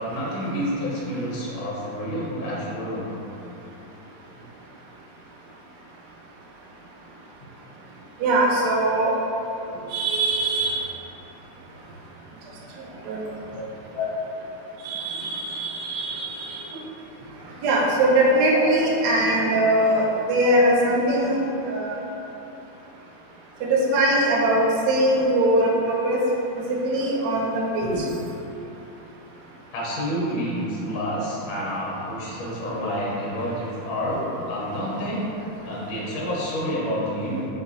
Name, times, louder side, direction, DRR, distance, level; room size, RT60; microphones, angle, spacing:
voice 1, 0.0-3.2 4.4-4.5 13.2-13.6 13.9-14.1 16.7-16.9 18.5-18.6 29.7-34.2 34.4-35.2 35.6-37.5, equal, 65° left, -6 dB, 1.2 m, -29 dB
voice 2, 8.2-9.1 9.9-10.8 13.0-13.2 14.8-16.7 17.6-21.4 21.6-22.0 23.6-26.2 26.7-28.1 34.1-34.3, right 1 dB, 80° right, -3 dB, 0.9 m, -21 dB
4.0 x 2.8 x 2.5 m, 3.0 s
omnidirectional pair, 2.3 m